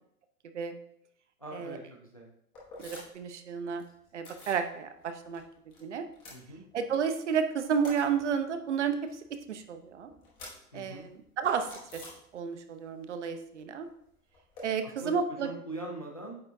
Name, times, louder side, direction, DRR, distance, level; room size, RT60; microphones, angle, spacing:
voice 1, 1.4-1.8 2.1-2.3 6.3-6.7 10.7-11.1 14.8-16.4, right 1 dB, 25° left, 0 dB, 0.4 m, -42 dB
sound 1, 2.5-3.3 3.6-4.7 5.0-5.8 6.0-7.1 7.4-12.8 13.0-14.6, left 2 dB, 10° left, 1.1 m, -51 dB
voice 2, 2.8-3.8 4.1-5.4 5.8-6.0 6.7-9.2 9.5-10.1 10.7-12.0 12.3-13.9 14.6-15.5, right 6 dB, 50° right, 9 dB, 0.7 m, -31 dB
8.7 x 6.5 x 2.6 m, 0.70 s
hypercardioid pair, 175°, 46 cm